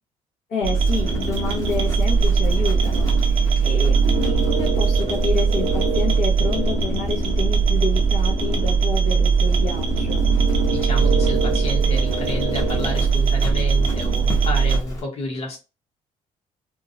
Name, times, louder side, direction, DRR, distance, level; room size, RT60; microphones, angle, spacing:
voice 1, 0.5-10.2, left 4 dB, 80° left, -2 dB, 0.7 m, -29 dB
sound 1, 0.6-14.8, right 5 dB, 40° right, 0.5 m, -20 dB
Livestock farm animals working animals, 0.7-15.0, equal, 25° left, 0.6 m, -28 dB
voice 2, 10.7-15.6, left 2 dB, 55° left, -1 dB, 1.0 m, -31 dB
2.5 x 2.0 x 2.5 m, 0.29 s
cardioid pair, 165°, 13 cm